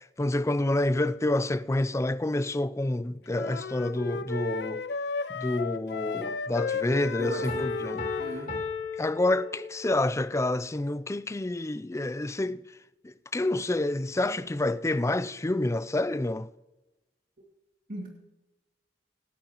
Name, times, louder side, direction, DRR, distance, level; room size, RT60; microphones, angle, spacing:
voice 1, 0.0-4.8 5.3-8.1 9.0-12.6 13.0-16.5, left 2 dB, 15° left, 0.4 m, -28 dB
sound 1, 3.3-8.5, left 4 dB, 70° left, 0.5 m, -34 dB
voice 2, 7.2-7.7 8.2-8.6 17.9-18.1, right 1 dB, 55° right, 2.3 m, -38 dB
Piano, 7.5-10.1, left 5 dB, 50° left, 2.6 m, -35 dB
26.5 x 8.8 x 3.0 m
head